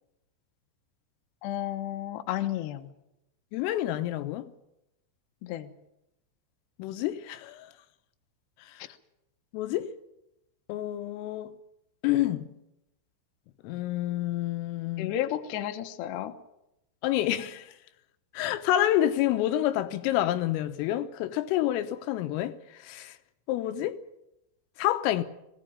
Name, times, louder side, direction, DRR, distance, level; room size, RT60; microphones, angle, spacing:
voice 1, 1.4-2.9 5.4-5.7 15.0-16.3, left 12 dB, 70° left, 3.0 m, -32 dB
voice 2, 3.5-4.5 6.8-7.7 9.5-9.9 10.7-11.6 12.0-12.5 13.6-15.2 17.0-17.7 18.4-22.6 22.8-23.1 23.5-24.0 24.8-25.2, left 13 dB, 85° left, 3.6 m, -28 dB
19.5 x 17.5 x 8.8 m
omnidirectional pair, 5.8 m